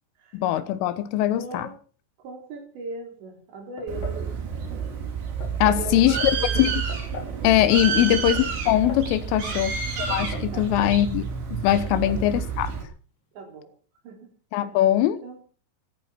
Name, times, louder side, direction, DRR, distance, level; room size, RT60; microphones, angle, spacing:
voice 1, 0.3-1.7 5.6-6.2 6.6-6.8 7.4-9.7 10.1-11.2 11.5-12.7 14.5-15.2, left 13 dB, 85° left, 3.6 m, -21 dB
voice 2, 1.3-1.8 2.2-4.4 4.7-4.8 5.6-6.8 7.9-8.2 9.3-9.8 10.5-11.0 11.9-12.3 13.3-13.7 14.0-14.3 15.2-15.4, right 2 dB, 65° right, 6.4 m, -39 dB
sound 1, 3.8-4.3 5.4-5.9 6.9-7.4 8.4-9.1 10.1-10.6 10.9-11.0 11.8-12.3, left 4 dB, 50° left, 6.7 m, -40 dB
Bird, 3.9-12.8, right 6 dB, 90° right, 5.3 m, -29 dB
14.5 x 13.5 x 5.8 m
omnidirectional pair, 5.6 m